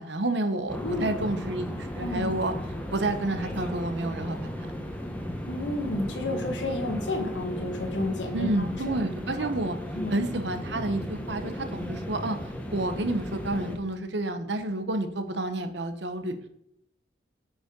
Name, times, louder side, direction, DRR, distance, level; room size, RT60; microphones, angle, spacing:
voice 1, 0.0-2.5 2.9-4.7 8.3-9.8 10.1-12.4 12.7-16.4, right 2 dB, 70° right, 8 dB, 1.0 m, -30 dB
sound 1, 0.7-13.8, equal, 10° left, 1.1 m, -35 dB
voice 2, 5.5-8.5 9.4-9.5 9.9-10.1, left 2 dB, 75° left, 3 dB, 1.7 m, -31 dB
8.6 x 5.4 x 5.3 m, 0.76 s
head